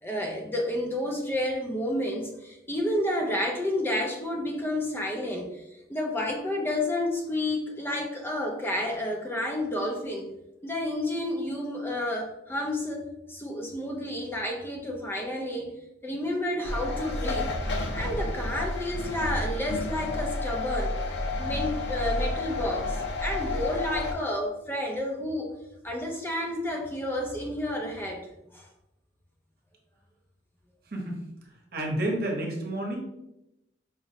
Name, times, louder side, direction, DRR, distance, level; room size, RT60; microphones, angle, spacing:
voice 1, 0.0-10.3 10.6-15.7 16.0-17.5 17.9-21.0 21.4-25.5 25.8-28.3 28.5-28.7, left 1 dB, 15° left, 0 dB, 0.4 m, -30 dB
sound 1, 16.6-24.1, left 2 dB, 75° left, 0.5 m, -31 dB
voice 2, 30.9-31.2 31.7-33.0, right 1 dB, 60° right, 0 dB, 0.9 m, -30 dB
4.9 x 2.0 x 2.7 m, 0.88 s
head